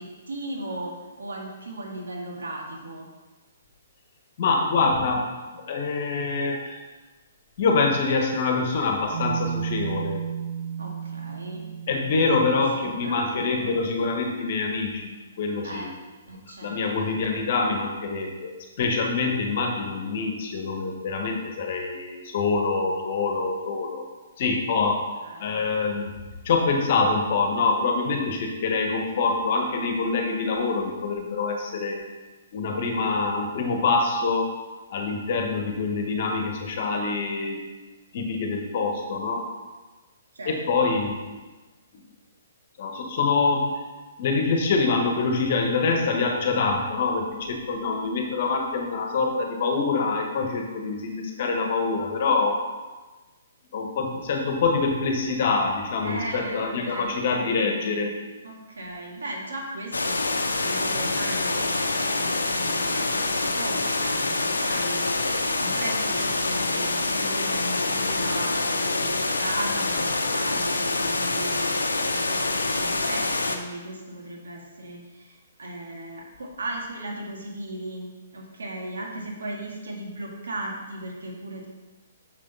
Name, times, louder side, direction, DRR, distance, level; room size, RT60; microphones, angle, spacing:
voice 1, 0.0-3.1 10.8-11.7 12.1-12.4 12.8-13.7 15.6-15.9 16.3-16.8 17.1-17.2 25.2-25.6 40.3-40.9 56.0-57.1 57.6-58.1 58.4-78.0 78.3-81.7, right 1 dB, 70° right, -1 dB, 1.8 m, -37 dB
voice 2, 4.4-5.3 5.5-6.8 7.6-10.2 11.9-15.9 16.6-24.0 24.4-25.0 25.4-26.1 26.4-32.0 32.5-34.5 34.9-37.6 38.1-39.5 40.5-41.2 41.9-42.0 42.8-43.7 44.2-52.6 53.7-58.1, left 4 dB, 50° left, 3 dB, 1.3 m, -25 dB
sound 1, 9.1-13.4, right 7 dB, 50° right, 0.4 m, -33 dB
sound 2, 59.9-73.6, left 2 dB, 80° left, 0.7 m, -26 dB
6.8 x 6.5 x 4.0 m, 1.2 s
figure-of-eight pair, 125°, 0 cm